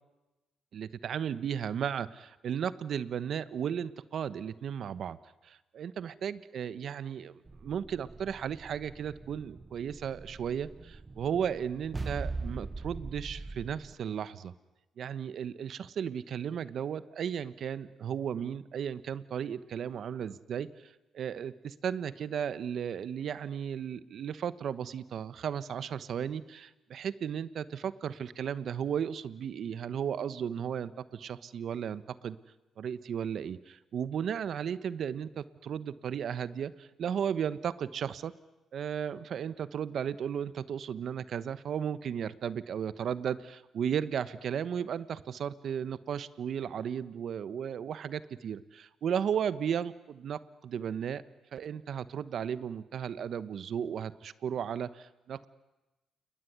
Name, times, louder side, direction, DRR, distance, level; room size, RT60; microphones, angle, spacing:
voice 1, 0.7-5.2 5.4-7.3 7.6-14.5 15.0-32.4 32.8-38.3 38.7-51.2 51.5-55.5, right 8 dB, 60° right, 14 dB, 1.1 m, -35 dB
sound 1, 7.5-13.9, right 3 dB, 25° right, 1.0 m, -42 dB
28.5 x 20.0 x 9.5 m, 1.0 s
cardioid pair, 90°, 0 cm